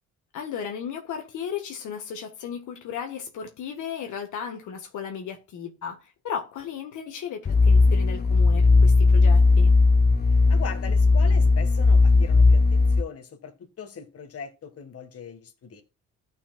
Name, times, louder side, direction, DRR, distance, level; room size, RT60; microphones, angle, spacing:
voice 1, 0.3-9.7, left 7 dB, 80° left, 1.6 m, -35 dB
sound 1, 7.5-13.0, left 3 dB, 30° left, 0.8 m, -17 dB
voice 2, 10.5-15.8, left 6 dB, 50° left, 1.8 m, -39 dB
14.0 x 5.7 x 2.4 m
cardioid pair, 90°, 30 cm